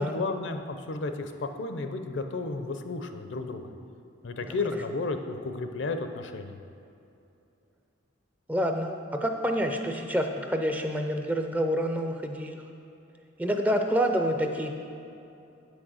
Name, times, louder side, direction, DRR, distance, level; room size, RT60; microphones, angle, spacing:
voice 1, 0.0-3.7 4.2-6.6, left 3 dB, 60° left, 7 dB, 0.6 m, -33 dB
voice 2, 8.5-12.6 13.4-14.7, equal, 10° right, 4 dB, 0.4 m, -27 dB
8.3 x 6.3 x 6.3 m, 2.7 s
head